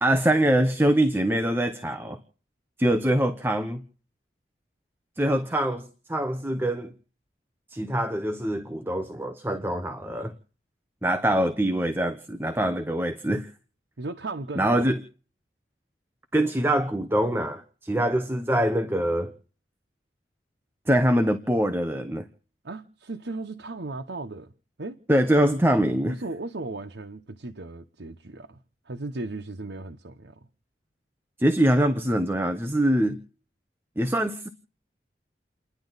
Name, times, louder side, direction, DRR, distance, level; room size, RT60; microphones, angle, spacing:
voice 1, 0.0-2.2 2.8-3.8 5.2-6.9 7.7-10.3 11.0-13.5 14.6-15.0 16.3-19.3 20.9-22.2 25.1-26.2 31.4-33.2 34.0-34.5, right 1 dB, 15° right, 0.9 m, -24 dB
voice 2, 14.0-14.9 22.6-24.5 24.8-25.0 26.0-28.6 28.9-30.4, right 2 dB, 85° right, 1.0 m, -36 dB
30.0 x 10.5 x 4.0 m
head